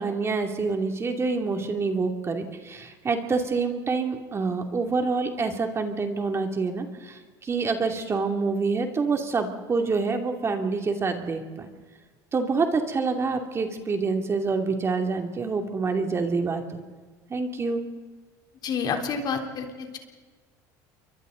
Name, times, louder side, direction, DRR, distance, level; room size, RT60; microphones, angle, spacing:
voice 1, 0.0-11.7 12.3-16.8 17.3-17.8, right 4 dB, 30° right, 4 dB, 2.6 m, -27 dB
voice 2, 18.6-20.0, left 5 dB, 50° left, 3 dB, 3.5 m, -29 dB
28.5 x 23.5 x 4.0 m, 1.4 s
supercardioid pair, 90°, 9 cm